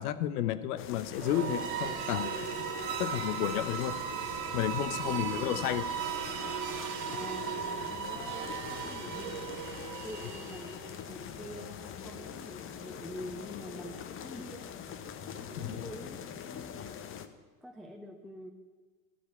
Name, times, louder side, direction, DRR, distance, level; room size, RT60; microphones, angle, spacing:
voice 1, 0.0-2.3 3.0-4.0 4.5-5.8 15.6-15.9, left 12 dB, 65° left, 13 dB, 0.9 m, -32 dB
sound 1, 0.8-17.3, left 8 dB, 25° left, 0.7 m, -44 dB
sound 2, 1.1-11.0, right 8 dB, 70° right, 1.4 m, -37 dB
voice 2, 4.9-5.7 7.1-9.7 10.0-14.7 15.5-16.8 17.6-18.5, equal, ahead, 2 dB, 0.3 m, -46 dB
12.5 x 5.0 x 8.2 m, 1.4 s
hypercardioid pair, 100°, 50 cm